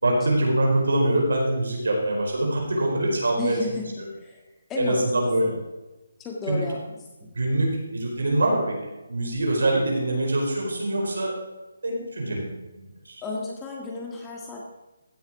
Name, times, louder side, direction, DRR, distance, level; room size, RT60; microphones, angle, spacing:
voice 1, 0.0-3.6 4.8-5.5 6.5-6.6 7.3-8.8 9.1-11.3 11.8-12.5 12.7-13.2, right 1 dB, 80° right, 0 dB, 4.6 m, -24 dB
voice 2, 3.4-3.9 4.2-4.4 4.7-5.1 5.4-5.6 6.2-7.3 13.2-14.6, left 3 dB, 10° left, -1 dB, 1.7 m, -33 dB
15.5 x 7.2 x 4.9 m, 1.1 s
hypercardioid pair, 165°, 0 cm